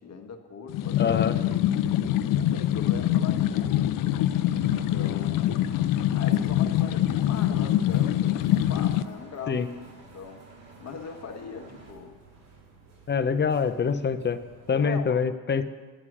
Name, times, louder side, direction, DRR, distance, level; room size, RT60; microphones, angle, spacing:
voice 1, 0.0-1.2 1.6-1.9 2.3-4.3 4.6-5.8 6.1-9.6 9.9-10.4 10.8-12.2 14.7-15.2, left 5 dB, 45° left, 4 dB, 1.4 m, -40 dB
sound 1, 0.7-9.0, left 12 dB, 60° left, 0.5 m, -24 dB
voice 2, 1.0-1.4 9.5-9.7 13.1-14.4 14.7-15.6, left 6 dB, 30° left, 9 dB, 0.7 m, -25 dB
Engine, 4.3-11.9, right 4 dB, 30° right, 2.5 m, -52 dB
sound 2, 7.3-14.7, right 3 dB, 60° right, 4.5 m, -54 dB
9.9 x 9.5 x 6.1 m, 1.4 s
cardioid pair, 100°, 37 cm